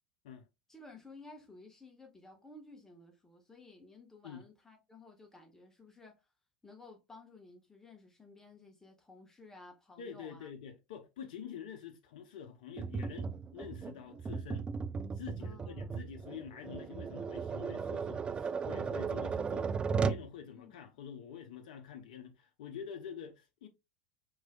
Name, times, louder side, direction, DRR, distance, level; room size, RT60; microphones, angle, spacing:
voice 1, 0.7-6.2 6.6-10.5 15.4-15.9 20.6-20.8, left 2 dB, 10° left, 1.4 m, -55 dB
voice 2, 10.0-14.7 15.1-19.7 20.0-23.7, left 8 dB, 60° left, 0.6 m, -47 dB
Tap, 12.8-20.3, right 5 dB, 20° right, 0.3 m, -36 dB
4.7 x 3.8 x 2.2 m
figure-of-eight pair, 80°, 5 cm